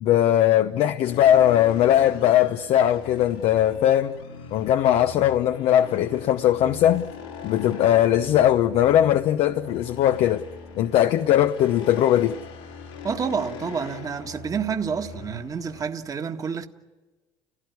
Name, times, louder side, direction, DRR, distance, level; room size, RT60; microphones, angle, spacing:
voice 1, 0.0-4.1 4.5-7.1 7.4-10.5 10.8-12.4, left 11 dB, 65° left, 0.8 m, -20 dB
sound 1, 1.0-15.8, left 6 dB, 90° left, 4.1 m, -41 dB
voice 2, 13.0-16.7, right 6 dB, 30° right, 1.7 m, -29 dB
30.0 x 16.5 x 9.6 m
supercardioid pair, 95°, 11 cm